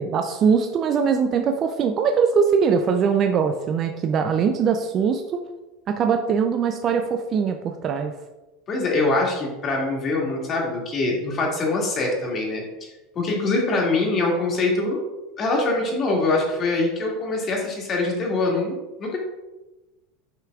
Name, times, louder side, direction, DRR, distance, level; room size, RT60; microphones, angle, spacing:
voice 1, 0.0-5.4 5.9-8.1, right 6 dB, 40° right, 6 dB, 0.5 m, -21 dB
voice 2, 8.7-12.9 13.1-15.0 15.4-19.2, left 2 dB, 40° left, -1 dB, 2.4 m, -24 dB
9.0 x 5.6 x 2.5 m, 1.1 s
hypercardioid pair, 85°, 0 cm